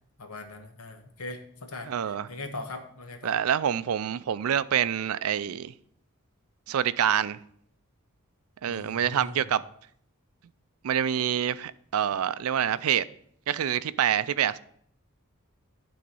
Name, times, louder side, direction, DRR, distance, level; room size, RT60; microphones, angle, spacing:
voice 1, 0.2-3.3 8.7-9.4, left 2 dB, 90° left, 1.2 m, -40 dB
voice 2, 1.9-2.3 3.2-5.7 6.7-7.4 8.6-9.6 10.8-13.0 13.5-14.6, right 9 dB, 80° right, 0.4 m, -26 dB
11.5 x 3.9 x 5.3 m
head